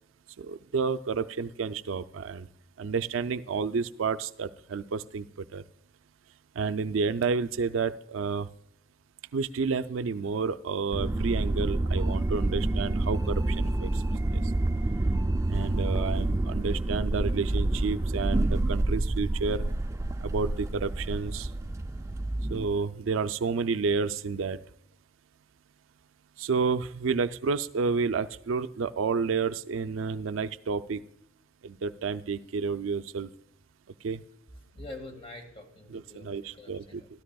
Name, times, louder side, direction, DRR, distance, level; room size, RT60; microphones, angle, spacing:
voice 1, 0.4-2.5 2.8-5.6 6.6-8.5 9.3-14.0 14.3-14.4 15.5-19.7 20.2-21.5 22.5-24.6 26.4-31.0 31.6-33.3 34.0-34.2 35.9-37.0, right 5 dB, 90° right, 13 dB, 0.4 m, -30 dB
sound 1, 10.9-22.7, right 2 dB, 15° right, 0.4 m, -28 dB
voice 2, 34.7-37.1, left 2 dB, 30° left, 3 dB, 1.9 m, -45 dB
13.5 x 13.0 x 2.3 m, 0.75 s
head